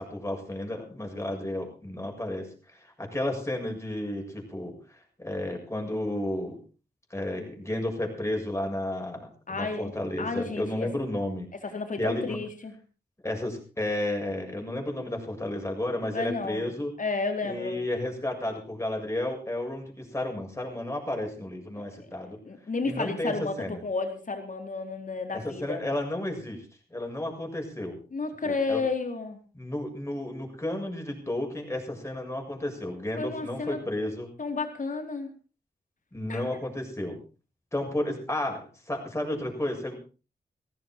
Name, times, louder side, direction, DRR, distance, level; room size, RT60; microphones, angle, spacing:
voice 1, 0.0-6.6 7.1-11.5 12.0-12.4 13.2-16.9 17.4-22.4 22.8-23.8 25.3-28.0 28.4-28.8 29.5-34.3 36.1-37.2 37.7-39.9, left 1 dB, 15° left, 2 dB, 7.0 m, -32 dB
voice 2, 9.5-9.9 10.2-10.9 11.6-12.7 16.1-17.8 21.7-22.1 22.4-25.8 28.1-29.4 33.2-33.8 34.4-35.3 36.3-36.6, left 4 dB, 50° left, 5 dB, 4.3 m, -32 dB
17.0 x 14.5 x 4.6 m, 0.35 s
cardioid pair, 65°, 17 cm